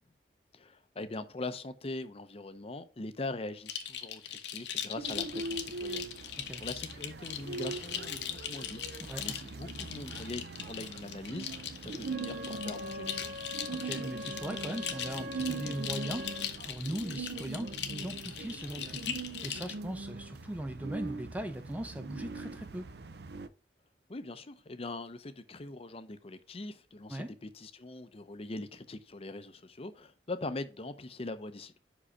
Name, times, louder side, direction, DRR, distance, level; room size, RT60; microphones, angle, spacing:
voice 1, 0.5-13.2 24.1-31.8, left 2 dB, 35° left, 0.6 m, -42 dB
sound 1, 3.7-19.7, left 9 dB, 65° left, 0.8 m, -40 dB
sound 2, 5.0-23.5, right 3 dB, 60° right, 0.5 m, -42 dB
voice 2, 9.0-9.4 13.7-22.9 27.1-27.3, right 1 dB, 10° right, 0.3 m, -39 dB
Wind instrument woodwind instrument, 12.0-16.5, left 2 dB, 85° right, 2.0 m, -43 dB
5.5 x 5.0 x 4.8 m
head